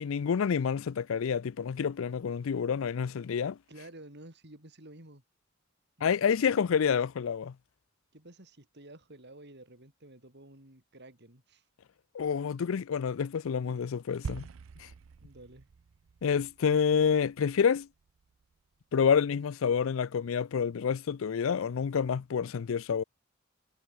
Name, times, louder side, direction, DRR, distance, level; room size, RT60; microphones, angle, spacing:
voice 1, 0.0-3.6 6.0-7.5 12.1-14.5 14.8-14.9 16.2-17.9 18.9-23.0, left 7 dB, 75° left, 0.4 m, -28 dB
voice 2, 3.7-5.2 6.0-6.6 8.1-11.6 15.2-15.7, right 1 dB, 55° right, 5.9 m, -52 dB
sound 1, 14.2-18.6, right 5 dB, 75° right, 0.5 m, -46 dB
head